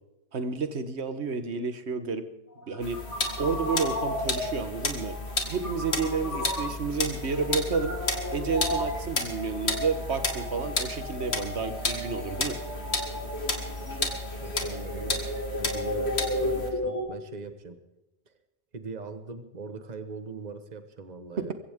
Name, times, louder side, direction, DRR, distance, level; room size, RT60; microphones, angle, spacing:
voice 1, 0.3-2.3 2.7-3.0 3.4-5.1 5.5-7.9 8.3-12.6 21.4-21.5, right 4 dB, 80° right, 10 dB, 1.5 m, -30 dB
sound 1, 2.5-17.0, left 1 dB, 15° left, 4.6 m, -34 dB
sound 2, 2.8-16.7, left 2 dB, 75° left, 2.4 m, -33 dB
voice 2, 14.4-15.3 15.6-17.8 18.3-18.4 18.7-21.5, right 4 dB, 40° right, 9 dB, 1.4 m, -41 dB
22.5 x 16.0 x 3.6 m, 0.94 s
omnidirectional pair, 1.1 m